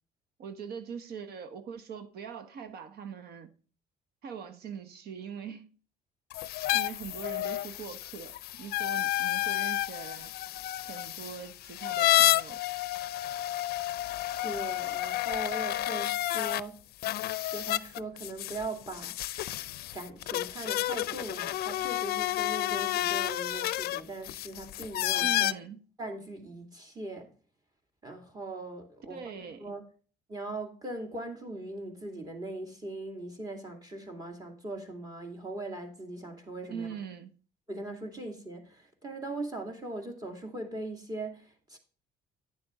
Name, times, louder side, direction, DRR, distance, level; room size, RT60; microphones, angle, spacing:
voice 1, 0.4-3.5 4.2-5.8 6.7-10.3 10.9-12.6 25.2-25.8 29.1-29.8 36.7-37.3, right 7 dB, 70° right, 1.2 m, -42 dB
sound 1, 6.3-16.6 17.0-25.5, left 15 dB, 65° left, 0.5 m, -30 dB
voice 2, 14.4-16.8 17.5-19.2 19.9-25.5 26.0-27.3 28.0-29.8 30.3-36.9 37.7-41.8, right 2 dB, 20° right, 2.3 m, -40 dB
9.5 x 7.0 x 3.6 m
cardioid pair, 110°, 17 cm